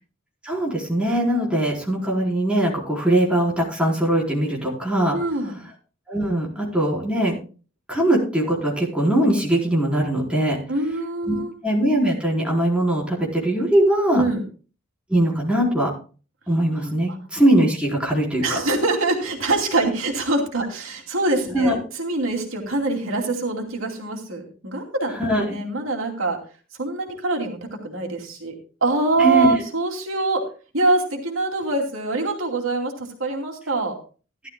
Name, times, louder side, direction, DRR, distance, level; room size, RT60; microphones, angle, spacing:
voice 1, 0.4-5.2 6.1-7.4 7.9-10.6 11.3-11.4 11.6-14.2 15.1-15.9 16.5-18.4 21.5-21.8 25.2-25.4 29.2-29.5, right 1 dB, 5° right, -4 dB, 4.1 m, -21 dB
voice 2, 5.1-5.6 10.7-11.5 14.1-14.4 18.4-25.1 25.4-26.4 26.8-28.5 28.8-30.4 30.7-34.0, right 2 dB, 85° right, 1 dB, 2.6 m, -24 dB
16.5 x 12.0 x 2.3 m, 0.36 s
head